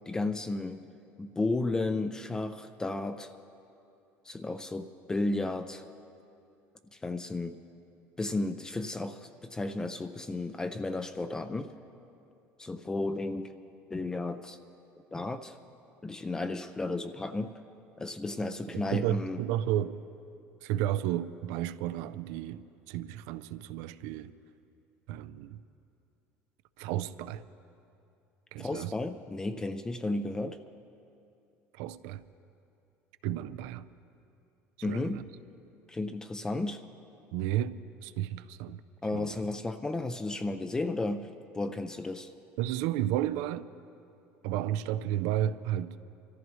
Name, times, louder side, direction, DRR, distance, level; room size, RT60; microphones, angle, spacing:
voice 1, 0.1-0.8 1.2-3.3 4.3-5.9 6.9-7.6 8.2-11.7 12.6-13.5 13.9-14.6 15.1-15.6 16.0-17.6 18.0-19.4 28.6-30.6 34.8-35.2 35.9-36.8 39.0-42.3, left 2 dB, 10° left, 9 dB, 0.4 m, -33 dB
voice 2, 18.7-20.0 20.6-24.3 25.1-25.6 26.8-27.4 28.5-28.9 31.7-32.2 33.2-33.9 34.9-35.2 37.3-38.8 39.1-39.4 42.6-43.7 44.4-46.0, right 12 dB, 80° right, 13 dB, 0.4 m, -32 dB
25.0 x 14.0 x 3.1 m, 2.7 s
cardioid pair, 150°, 6 cm